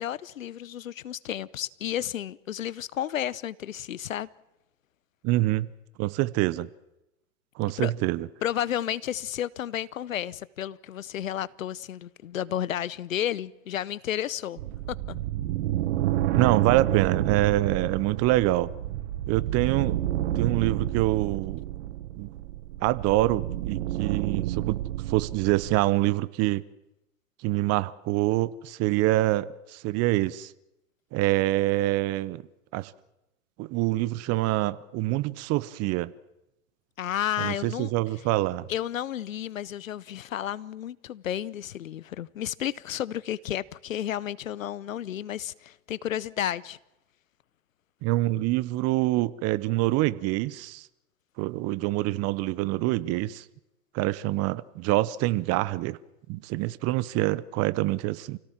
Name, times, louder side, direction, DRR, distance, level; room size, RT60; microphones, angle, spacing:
voice 1, 0.0-4.3 7.8-7.9 8.4-14.6 14.9-15.2 37.0-37.9 38.7-46.8, left 11 dB, 80° left, 0.9 m, -32 dB
voice 2, 5.2-5.7 6.0-6.7 7.6-8.3 16.3-18.7 19.3-20.0 20.3-21.6 22.2-22.3 22.8-24.8 25.1-26.6 27.4-30.5 31.1-32.4 32.7-32.9 33.6-36.1 37.4-38.7 48.0-50.9 51.4-53.4 53.9-56.0 56.3-58.4, right 17 dB, 40° right, 1.0 m, -26 dB
sound 1, 14.6-25.8, right 13 dB, 60° right, 1.4 m, -30 dB
28.5 x 17.0 x 7.4 m
hypercardioid pair, 105°, 39 cm